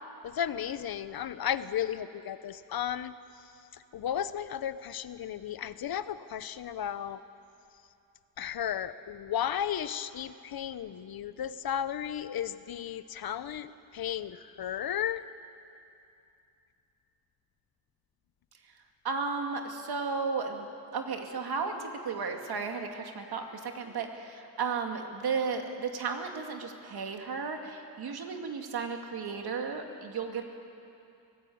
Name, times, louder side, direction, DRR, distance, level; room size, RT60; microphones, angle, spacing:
voice 1, 0.2-3.4 3.7-7.2 8.4-15.3, left 9 dB, 70° left, 13 dB, 0.9 m, -34 dB
voice 2, 18.6-20.7 20.9-30.4, right 5 dB, 75° right, 4 dB, 2.3 m, -34 dB
24.5 x 18.0 x 8.6 m, 2.7 s
wide cardioid pair, 150°, 38 cm